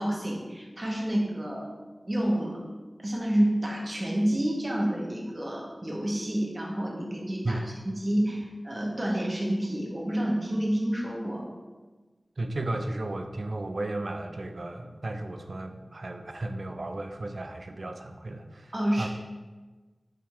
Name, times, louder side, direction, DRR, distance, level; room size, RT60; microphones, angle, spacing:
voice 1, 0.0-1.7 2.0-2.6 3.0-7.6 7.8-11.4 18.7-19.1, right 1 dB, 35° right, -2 dB, 0.9 m, -29 dB
voice 2, 12.4-19.1, right 2 dB, 65° right, 6 dB, 0.4 m, -34 dB
3.4 x 3.3 x 4.6 m, 1.3 s
wide cardioid pair, 60°, 0 cm